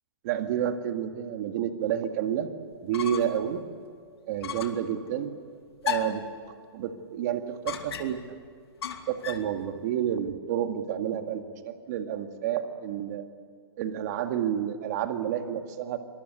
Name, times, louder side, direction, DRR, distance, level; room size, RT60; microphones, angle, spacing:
voice 1, 0.2-2.5 2.8-3.6 4.3-5.3 5.8-6.2 6.7-8.2 9.1-13.2 13.8-16.0, right 10 dB, 40° right, 7 dB, 2.0 m, -30 dB
sound 1, 2.7-3.5 3.8-3.9 4.4-4.9 5.8-6.3 7.7-8.3 8.8-9.5, left 8 dB, 75° left, 2.6 m, -34 dB
25.5 x 20.5 x 8.2 m, 2.2 s
hypercardioid pair, 155°, 13 cm